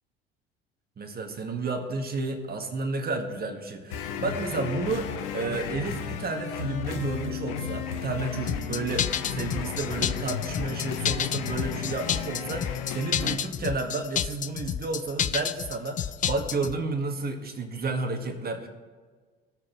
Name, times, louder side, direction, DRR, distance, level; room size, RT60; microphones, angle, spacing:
voice 1, 1.0-18.7, right 3 dB, 30° right, 5 dB, 1.6 m, -31 dB
sound 1, 3.9-13.4, left 7 dB, 70° left, 0.9 m, -34 dB
sound 2, 8.5-16.7, left 9 dB, 30° left, 0.4 m, -30 dB
18.0 x 6.5 x 3.1 m, 1.5 s
hypercardioid pair, 65°, 29 cm